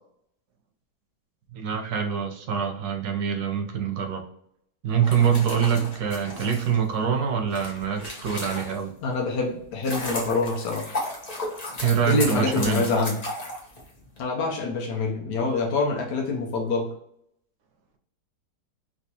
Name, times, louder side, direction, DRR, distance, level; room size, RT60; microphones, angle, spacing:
voice 1, 1.5-4.2 4.8-8.9 11.8-12.9, right 7 dB, 70° right, 4 dB, 1.1 m, -25 dB
sound 1, 4.9-9.0 9.5-14.2, left 1 dB, 35° left, 0.7 m, -34 dB
voice 2, 9.0-10.9 12.1-13.1 14.2-16.9, left 3 dB, 80° left, 0 dB, 1.3 m, -26 dB
3.4 x 3.0 x 2.8 m, 0.73 s
omnidirectional pair, 1.8 m